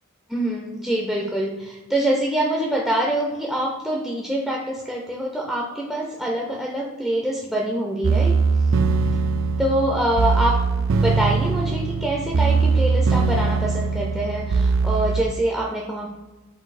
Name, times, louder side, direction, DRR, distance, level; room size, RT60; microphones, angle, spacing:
voice 1, 0.3-8.4 9.6-10.6 11.0-16.1, right 1 dB, ahead, -3 dB, 0.4 m, -25 dB
sound 1, 8.0-15.2, right 4 dB, 60° right, 0.4 m, -21 dB
4.1 x 2.7 x 4.1 m, 1.1 s
head